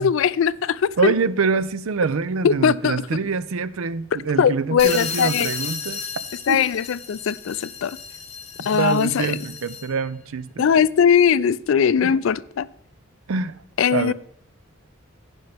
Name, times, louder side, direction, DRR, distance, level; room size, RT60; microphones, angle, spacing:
voice 1, 0.0-1.1 2.4-3.0 4.4-5.5 6.5-8.0 8.6-9.4 10.6-12.7 13.8-14.1, left 7 dB, 65° left, 0.3 m, -20 dB
voice 2, 1.0-6.0 6.5-6.6 8.6-10.7 12.0-12.2 13.3-13.6 13.9-14.1, right 5 dB, 75° right, 0.5 m, -25 dB
sound 1, 4.8-10.0, left 6 dB, 30° left, 1.1 m, -33 dB
16.0 x 5.4 x 3.4 m
head